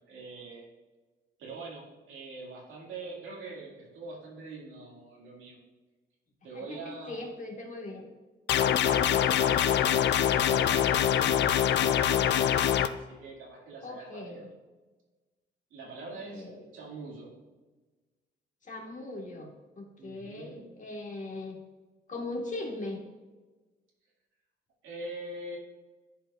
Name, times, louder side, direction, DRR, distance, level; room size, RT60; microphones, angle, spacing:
voice 1, 0.1-0.6 1.4-5.6 6.4-7.3 8.7-14.4 15.7-16.5 16.7-17.3 20.0-20.7 24.8-25.6, right 3 dB, 85° right, -3 dB, 2.3 m, -44 dB
voice 2, 6.5-8.1 13.8-14.5 16.3-16.5 18.7-19.5 19.8-21.6 22.1-23.0, left 2 dB, 40° left, 1 dB, 1.8 m, -39 dB
sound 1, 8.5-12.9, left 10 dB, 65° left, 0.4 m, -24 dB
11.0 x 4.9 x 2.5 m, 1.2 s
cardioid pair, 90°, 20 cm